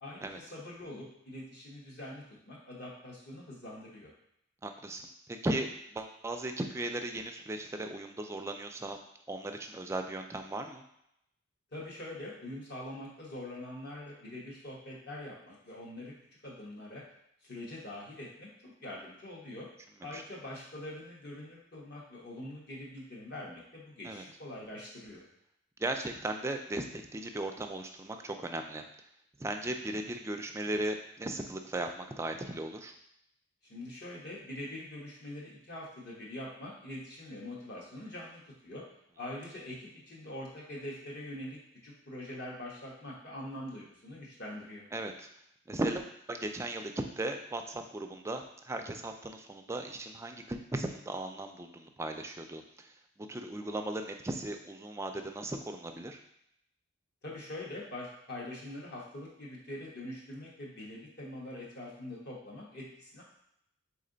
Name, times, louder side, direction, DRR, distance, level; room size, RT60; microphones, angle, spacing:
voice 1, 0.0-4.1 11.7-16.1 16.4-17.0 17.4-19.7 20.0-25.2 33.7-38.8 39.2-39.8 40.1-44.8 57.2-63.2, left 1 dB, 55° left, -4 dB, 1.2 m, -44 dB
voice 2, 4.6-5.0 5.3-9.0 9.3-10.8 20.1-20.2 24.0-24.2 25.8-28.8 29.4-32.9 44.9-45.3 45.7-52.9 53.2-56.2, right 1 dB, 15° right, 5 dB, 0.3 m, -37 dB
3.6 x 3.2 x 3.9 m, 0.76 s
head